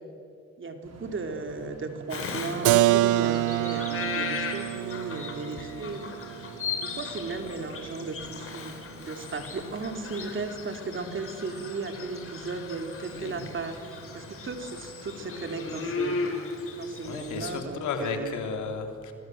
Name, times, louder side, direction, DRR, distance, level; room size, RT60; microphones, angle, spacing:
voice 1, 0.6-6.1 6.8-13.7 14.1-16.2 16.8-18.4, right 4 dB, 40° right, 5 dB, 3.2 m, -35 dB
sound 1, 0.8-16.0, right 2 dB, 60° right, 6.1 m, -51 dB
Bird vocalization bird call bird song, 2.1-17.6, left 4 dB, 45° left, 4.0 m, -37 dB
Keyboard (musical), 2.6-8.2, right 17 dB, 85° right, 0.6 m, -27 dB
voice 2, 13.1-13.8 14.4-14.5 17.0-19.1, left 5 dB, 75° left, 4 dB, 3.4 m, -34 dB
26.5 x 19.5 x 7.9 m, 2.3 s
cardioid pair, 90°, 30 cm